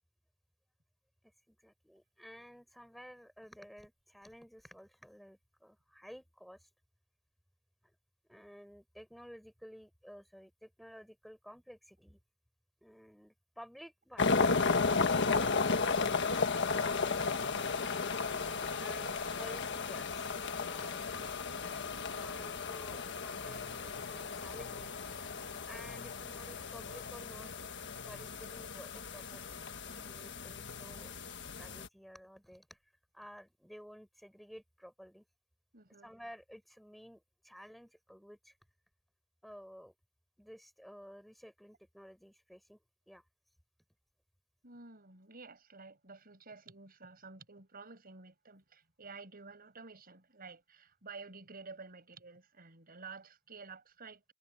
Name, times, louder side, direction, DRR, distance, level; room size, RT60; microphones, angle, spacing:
voice 1, 1.5-6.7 8.3-12.2 12.8-15.6 18.8-21.4 22.1-24.9 25.7-27.5 28.0-31.2 31.6-32.8 33.1-35.2 36.0-38.6 39.4-39.9 40.4-42.8 43.1-43.2, equal, ahead, 7.2 m, -53 dB
sound 1, 14.2-31.9, left 4 dB, 60° left, 1.5 m, -34 dB
voice 2, 35.7-36.1 44.6-54.3, right 4 dB, 45° right, 6.3 m, -51 dB
head